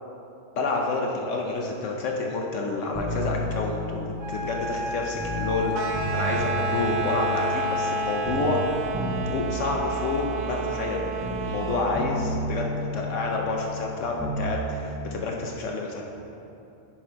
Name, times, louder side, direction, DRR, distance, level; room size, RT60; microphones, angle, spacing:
voice 1, 0.6-4.0 4.3-5.7 6.1-8.6 9.3-11.0 11.4-16.0, left 3 dB, 65° left, 0 dB, 1.0 m, -29 dB
sound 1, 2.9-5.6 5.9-11.7 11.9-14.6 14.8-14.9, equal, 10° right, 0.6 m, -32 dB
Wind instrument woodwind instrument, 4.2-8.8, left 4 dB, 80° right, 1.7 m, -31 dB
sound 2, 5.7-12.0, right 9 dB, 65° right, 0.8 m, -32 dB
10.0 x 3.7 x 4.5 m, 2.9 s
omnidirectional pair, 1.4 m